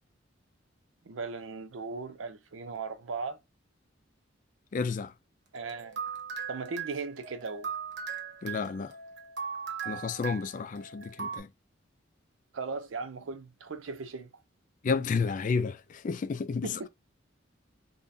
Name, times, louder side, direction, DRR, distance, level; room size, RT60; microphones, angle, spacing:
voice 1, 1.0-3.4 5.5-6.0 6.5-7.7 12.5-14.3 16.6-16.9, right 4 dB, 90° right, 0.5 m, -37 dB
voice 2, 4.7-5.1 8.4-8.9 9.9-11.5 14.8-16.7, left 5 dB, 40° left, 0.3 m, -31 dB
sound 1, 5.6-11.4, right 6 dB, 65° right, 0.8 m, -39 dB
3.6 x 2.2 x 2.6 m
head